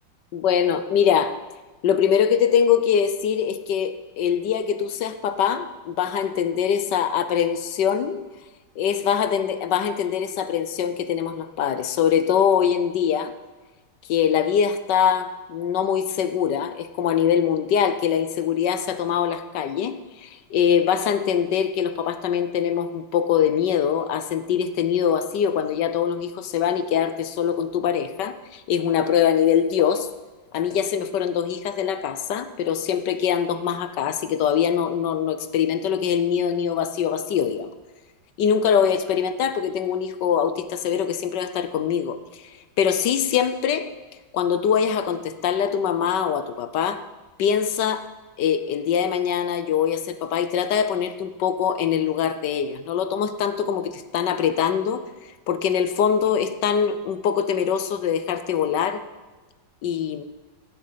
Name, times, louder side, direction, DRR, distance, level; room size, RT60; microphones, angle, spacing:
voice 1, 0.3-1.4 1.8-8.2 8.8-13.3 14.1-30.1 30.5-37.7 38.4-42.2 42.8-43.9 44.3-47.0 47.4-48.1 48.4-55.0 55.5-59.0 59.8-60.2, left 8 dB, 70° left, 11 dB, 1.4 m, -23 dB
14.0 x 9.9 x 5.7 m, 1.2 s
omnidirectional pair, 2.0 m